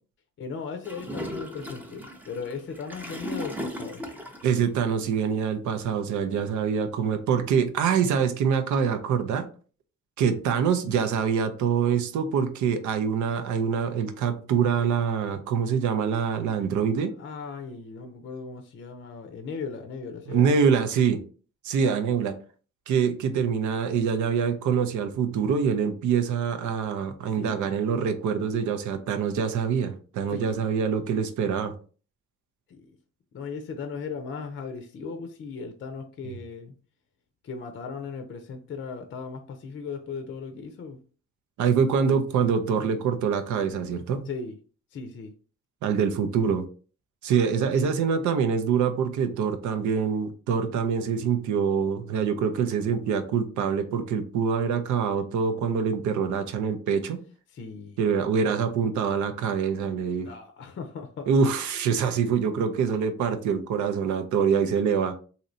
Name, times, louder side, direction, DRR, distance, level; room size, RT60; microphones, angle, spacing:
voice 1, 0.4-4.0 17.2-20.6 27.4-27.7 30.3-30.6 32.7-33.0 33.3-36.8 37.4-41.0 44.3-44.5 44.9-45.3 47.7-47.9 57.5-58.1 60.2-61.3, left 5 dB, 40° left, 7 dB, 0.5 m, -37 dB
Gurgling / Toilet flush, 0.8-4.6, left 1 dB, 5° right, 0.5 m, -36 dB
voice 2, 4.4-9.5 10.2-17.1 20.3-21.2 21.6-22.3 22.9-31.7 41.6-44.3 45.8-46.6 47.2-57.2 58.0-60.3 61.3-65.1, right 6 dB, 75° right, 8 dB, 0.6 m, -25 dB
3.1 x 2.8 x 2.6 m, 0.39 s
cardioid pair, 90°, 30 cm